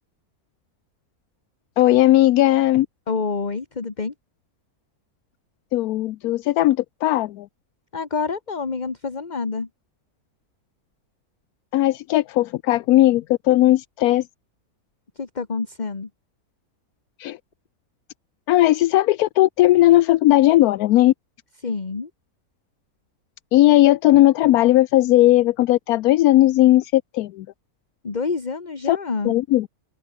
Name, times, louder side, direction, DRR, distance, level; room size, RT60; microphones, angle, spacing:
voice 1, 1.8-2.9 5.7-7.5 11.7-14.3 17.2-17.4 18.5-21.1 23.5-27.5 28.9-29.0 29.2-29.7, left 15 dB, 80° left, 1.1 m, -17 dB
voice 2, 3.1-4.1 7.9-9.7 15.2-16.1 21.6-22.1 28.0-29.3, left 4 dB, 30° left, 1.6 m, -27 dB
omnidirectional pair, 1.6 m